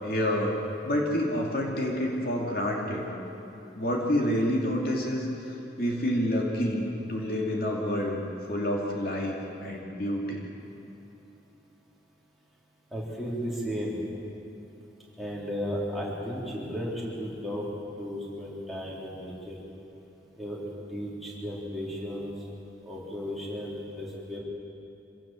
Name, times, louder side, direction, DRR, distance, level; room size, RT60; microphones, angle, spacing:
voice 1, 0.0-0.6 0.8-3.1 3.7-5.5 5.8-8.2 8.5-10.4, equal, 55° left, -1 dB, 2.8 m, -28 dB
voice 2, 12.9-14.0 15.2-17.7 18.0-19.5 20.4-22.3 22.8-24.4, equal, ahead, -6 dB, 4.0 m, -34 dB
26.0 x 17.0 x 7.7 m, 3.0 s
head